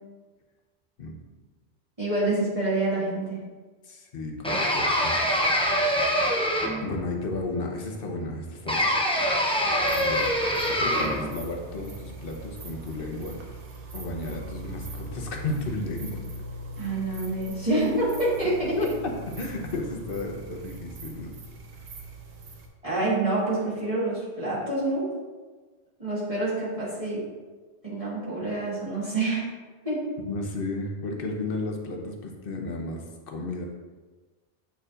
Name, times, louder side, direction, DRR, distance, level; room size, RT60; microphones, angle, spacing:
voice 1, 2.0-3.4 16.8-18.8 22.8-25.1 26.0-27.2 27.8-29.4 29.8-30.2, right 2 dB, 30° right, -10 dB, 1.7 m, -27 dB
voice 2, 3.8-5.2 6.8-8.9 9.5-9.6 9.9-10.3 10.7-13.4 13.9-16.3 18.8-18.9 19.4-21.3 30.3-33.6, left 2 dB, 60° left, 2 dB, 1.0 m, -33 dB
sound 1, 4.4-7.0 8.7-11.3, equal, 5° left, 0.5 m, -24 dB
sound 2, 9.8-22.7, right 1 dB, 90° right, 1.1 m, -40 dB
8.0 x 4.7 x 2.5 m, 1.3 s
omnidirectional pair, 1.1 m